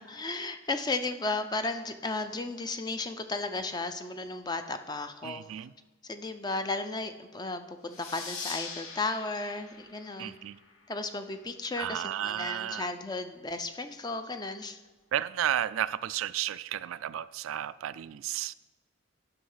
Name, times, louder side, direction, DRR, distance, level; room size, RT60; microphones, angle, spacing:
voice 1, 0.1-5.4 6.0-10.4 10.9-14.8, left 3 dB, 20° left, 8 dB, 0.5 m, -34 dB
voice 2, 5.2-5.7 10.2-10.6 11.8-12.9 15.1-18.5, right 11 dB, 75° right, 16 dB, 0.3 m, -33 dB
sound 1, 7.9-11.1, left 5 dB, 85° left, 1.4 m, -43 dB
11.5 x 5.8 x 5.6 m, 1.2 s
head